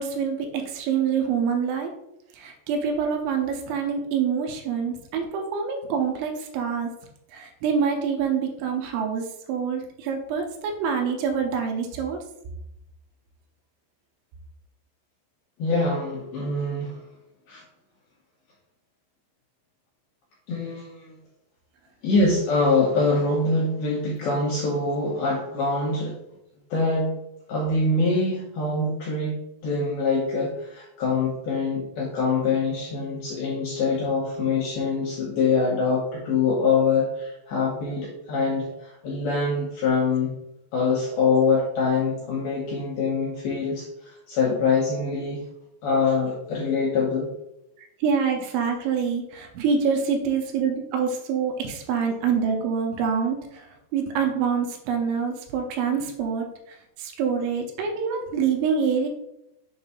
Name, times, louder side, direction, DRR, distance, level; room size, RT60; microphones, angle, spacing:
voice 1, 0.0-1.9 2.3-6.9 7.3-12.2 47.8-53.7 53.9-59.1, right 6 dB, 80° right, 3 dB, 3.0 m, -26 dB
voice 2, 15.6-17.0 17.5-17.6 20.5-21.2 22.0-26.2 26.7-27.1 27.5-40.3 40.7-45.4 45.8-47.3, left 4 dB, 80° left, -4 dB, 2.2 m, -24 dB
7.1 x 2.6 x 5.4 m, 0.86 s
omnidirectional pair, 5.5 m